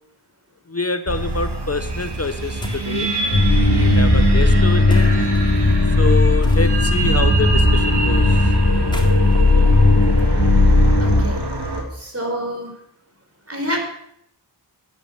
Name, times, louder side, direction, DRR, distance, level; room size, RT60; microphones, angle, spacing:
voice 1, 0.7-5.1 5.9-8.6 9.5-9.7, left 3 dB, 35° left, 9 dB, 1.0 m, -26 dB
sound 1, 1.1-11.8, right 2 dB, 70° right, 3.0 m, -23 dB
sound 2, 2.6-3.0 4.9-5.4 6.4-7.1 8.7-10.7, equal, 10° left, 3.5 m, -34 dB
sound 3, 3.3-11.2, left 3 dB, 60° left, 4.9 m, -16 dB
voice 2, 11.0-11.4 11.9-12.7 13.5-13.8, equal, 35° right, 2 dB, 5.0 m, -27 dB
13.5 x 10.5 x 7.3 m, 0.74 s
wide cardioid pair, 55°, 41 cm